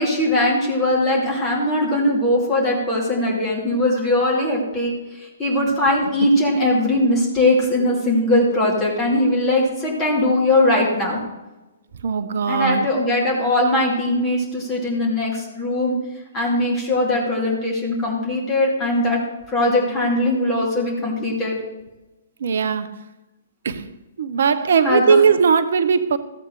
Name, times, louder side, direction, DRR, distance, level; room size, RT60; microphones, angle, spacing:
voice 1, 0.0-11.2 12.5-15.9 16.3-19.2 19.5-21.5 24.8-25.2, left 1 dB, 20° left, -3 dB, 2.6 m, -20 dB
voice 2, 12.0-12.9 22.4-23.0 23.6-23.9 24.2-26.2, right 6 dB, 60° right, 12 dB, 0.7 m, -18 dB
14.5 x 7.9 x 3.2 m, 1.0 s
figure-of-eight pair, 120°, 0 cm